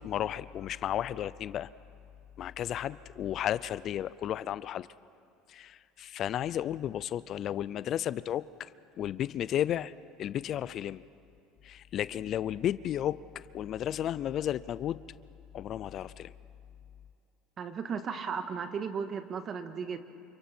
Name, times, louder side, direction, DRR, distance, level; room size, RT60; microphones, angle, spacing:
voice 1, 0.0-1.7 2.4-4.9 5.5-9.9 10.2-11.0 11.6-15.0 15.5-16.3, left 11 dB, 50° left, 17 dB, 0.5 m, -33 dB
voice 2, 17.6-20.0, right 6 dB, 40° right, 8 dB, 1.7 m, -35 dB
29.0 x 26.0 x 4.5 m, 2.7 s
supercardioid pair, 100°, 0 cm